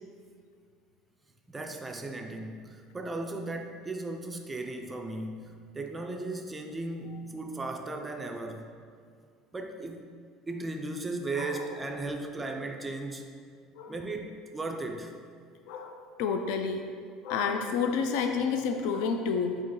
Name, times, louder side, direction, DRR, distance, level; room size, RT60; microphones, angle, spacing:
voice 1, 1.5-8.7 9.5-10.1 10.5-13.2 13.9-15.1, right 2 dB, 10° right, 4 dB, 0.3 m, -36 dB
voice 2, 11.3-12.1 13.7-14.0 15.7-16.9 17.2-19.6, left 5 dB, 75° left, 5 dB, 0.3 m, -30 dB
4.2 x 2.9 x 3.7 m, 2.1 s
cardioid pair, 155°, 0 cm